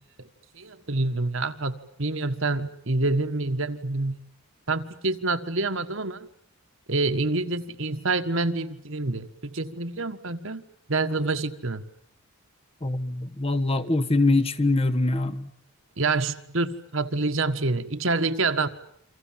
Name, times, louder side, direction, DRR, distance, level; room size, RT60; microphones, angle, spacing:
voice 1, 0.5-4.2 4.7-6.3 6.9-10.6 10.9-11.8 16.0-18.7, right 3 dB, 60° right, 1.6 m, -27 dB
voice 2, 12.8-15.5, left 2 dB, 25° left, 1.2 m, -23 dB
29.0 x 25.5 x 7.5 m
head